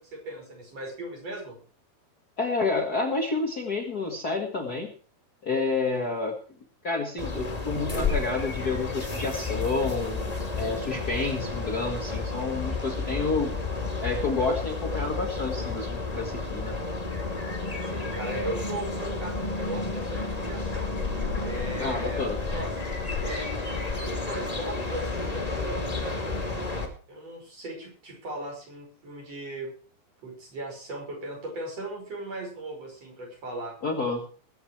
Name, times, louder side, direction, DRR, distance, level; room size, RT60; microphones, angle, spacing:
voice 1, 0.0-1.6 5.9-6.1 17.8-20.9 21.4-22.7 23.2-26.5 27.1-29.7 30.2-33.7, right 1 dB, 40° right, 1 dB, 6.3 m, -38 dB
voice 2, 2.4-4.9 5.4-6.4 6.8-13.5 14.0-16.7 21.8-22.4 33.8-34.3, left 3 dB, 85° left, 2 dB, 0.8 m, -29 dB
sound 1, 7.2-26.9, left 3 dB, 10° left, 1.9 m, -31 dB
21.0 x 8.0 x 4.7 m, 0.40 s
omnidirectional pair, 4.6 m